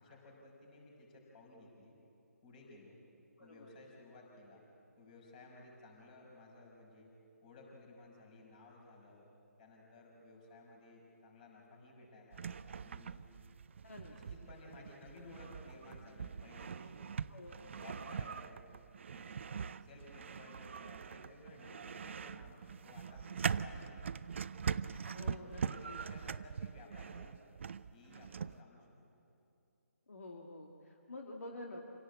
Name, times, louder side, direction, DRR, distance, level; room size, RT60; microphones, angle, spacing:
voice 1, 0.0-2.0 2.4-3.0 3.4-4.6 5.0-7.1 7.4-9.3 9.6-13.2 14.1-17.0 17.6-18.7 19.1-19.3 19.8-24.1 25.0-27.5 27.9-28.9, left 2 dB, 30° left, -1 dB, 5.9 m, -56 dB
voice 2, 3.4-3.7 13.8-14.2 17.3-17.7 25.1-26.0 30.1-31.8, left 2 dB, 65° left, 0 dB, 2.3 m, -49 dB
sound 1, 12.3-28.6, right 6 dB, 50° right, 0.5 m, -42 dB
27.0 x 17.5 x 8.2 m, 2.7 s
figure-of-eight pair, 150°, 9 cm